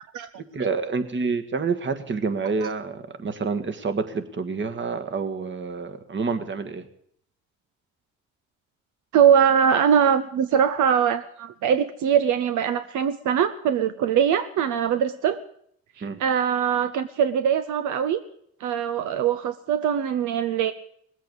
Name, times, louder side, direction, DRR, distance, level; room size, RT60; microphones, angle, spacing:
voice 1, 0.5-6.8 16.0-16.2, right 4 dB, 40° right, 8 dB, 1.6 m, -28 dB
voice 2, 9.1-15.4 16.0-18.2 18.6-20.7, right 8 dB, 75° right, 11 dB, 0.8 m, -22 dB
19.0 x 8.3 x 8.0 m, 0.68 s
cardioid pair, 90°, 30 cm